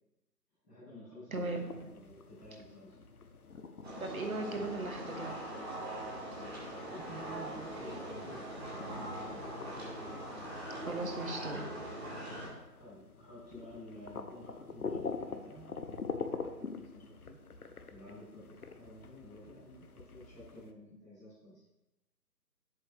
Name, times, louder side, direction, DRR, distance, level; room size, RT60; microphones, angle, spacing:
voice 1, 0.6-2.9 6.6-9.4 12.7-17.3 17.9-21.6, equal, 10° left, -19 dB, 1.6 m, -51 dB
sound 1, 1.3-20.7, left 4 dB, 60° left, 0.8 m, -46 dB
voice 2, 1.3-1.6 4.0-5.4 10.9-11.7, right 2 dB, 55° right, 4 dB, 1.3 m, -37 dB
sound 2, 3.8-12.5, right 1 dB, 40° right, 2.4 m, -42 dB
sound 3, 7.0-12.5, equal, 80° left, 3.0 m, -54 dB
7.8 x 7.3 x 3.0 m, 0.92 s
figure-of-eight pair, 165°, 50 cm